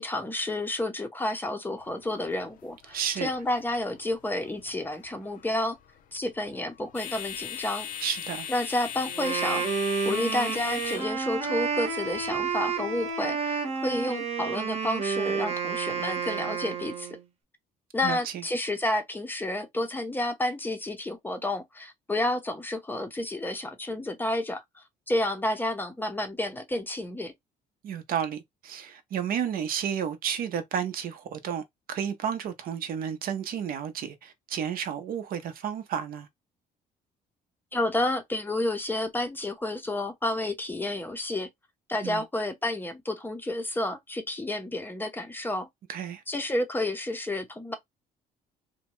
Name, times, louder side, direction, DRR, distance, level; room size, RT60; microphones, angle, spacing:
voice 1, 0.0-5.8 6.1-7.9 8.5-9.6 10.0-17.1 17.9-27.3 37.7-41.5 41.9-45.7 46.3-47.7, left 1 dB, 10° left, 0.6 m, -30 dB
sound 1, 1.8-13.1, left 9 dB, 55° left, 0.5 m, -41 dB
voice 2, 2.9-3.3 8.0-8.5 18.0-18.4 27.8-36.3 42.0-42.2 45.9-46.2, right 8 dB, 60° right, 0.6 m, -32 dB
Wind instrument woodwind instrument, 9.0-17.2, right 5 dB, 35° right, 0.9 m, -30 dB
2.7 x 2.1 x 3.0 m
cardioid pair, 110°, 17 cm